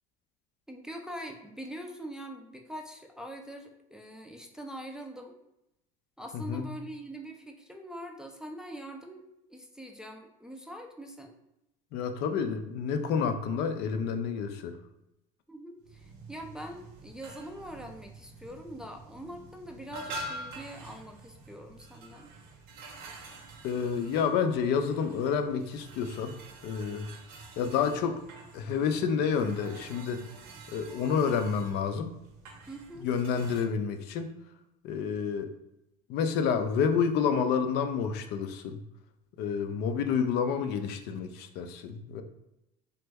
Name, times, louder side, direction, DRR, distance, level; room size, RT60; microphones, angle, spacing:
voice 1, 0.7-5.3 6.2-9.2 9.5-11.3 15.5-22.3 32.7-33.1 39.9-40.0, equal, 5° right, 2 dB, 0.3 m, -43 dB
voice 2, 11.9-14.8 23.6-26.3 26.6-27.1 27.6-28.2 28.5-30.3 30.7-32.2 33.0-34.3 34.8-35.5 36.1-38.8 39.4-42.2, left 6 dB, 60° left, 8 dB, 0.4 m, -29 dB
sound 1, 15.8-33.6, right 2 dB, 85° right, 0.8 m, -47 dB
3.1 x 2.1 x 3.4 m, 0.87 s
supercardioid pair, 100°, 19 cm